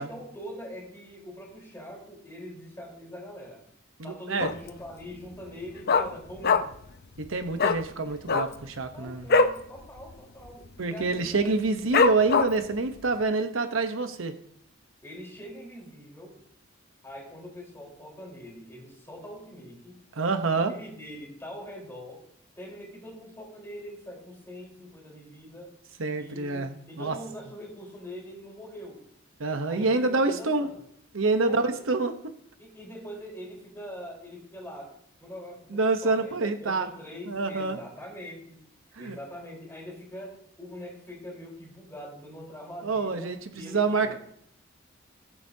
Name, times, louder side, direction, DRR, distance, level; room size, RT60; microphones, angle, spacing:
voice 1, 0.0-3.7 4.0-6.7 8.9-11.8 15.0-16.4 17.0-19.9 20.5-22.2 22.6-25.7 26.1-29.0 29.7-30.8 31.4-31.8 32.6-34.9 35.2-36.3 36.6-38.6 39.0-44.2, equal, 15° left, -3 dB, 4.2 m, -43 dB
voice 2, 4.0-4.5 7.2-9.3 10.8-14.4 20.2-20.7 26.0-27.2 29.4-30.7 31.1-32.1 35.7-36.9 37.3-37.8 39.0-39.2 42.8-44.1, right 3 dB, 80° right, 7 dB, 1.0 m, -27 dB
Dog, 4.4-4.8 5.1-5.2 5.5-6.9 7.2-7.3 7.6-7.8 8.2-9.6 10.0-10.1 10.4-10.8 11.3-11.4 11.9-12.7 13.2-13.3, left 4 dB, 50° left, 0.7 m, -23 dB
20.5 x 8.2 x 2.8 m, 0.68 s
head